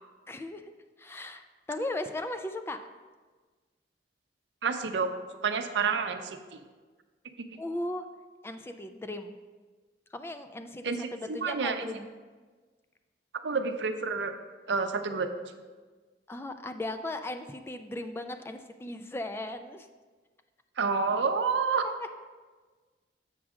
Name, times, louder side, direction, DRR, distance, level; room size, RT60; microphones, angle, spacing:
voice 1, 0.3-0.7 1.0-1.4 1.7-2.8 7.6-8.1 8.4-9.3 10.1-12.1 16.3-19.9 21.8-21.9, left 1 dB, 15° left, 8 dB, 0.3 m, -37 dB
voice 2, 4.6-6.4 10.8-11.9 13.4-14.4 14.7-15.3 20.8-21.9, right 5 dB, 85° right, 7 dB, 0.6 m, -29 dB
7.4 x 6.0 x 3.6 m, 1.4 s
head